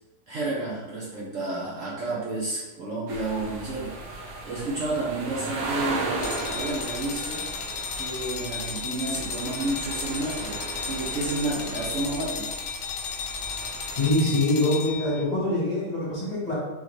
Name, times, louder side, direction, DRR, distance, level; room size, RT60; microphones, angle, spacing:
voice 1, 0.3-6.2 6.5-12.5, right 2 dB, 55° right, -6 dB, 1.1 m, -31 dB
sound 1, 3.1-14.1, right 2 dB, 85° right, 1.4 m, -36 dB
sound 2, 6.2-15.2, left 6 dB, 75° left, 1.1 m, -34 dB
voice 2, 14.0-16.5, left 1 dB, 25° left, -8 dB, 1.4 m, -24 dB
3.9 x 3.8 x 3.1 m, 1.1 s
omnidirectional pair, 1.8 m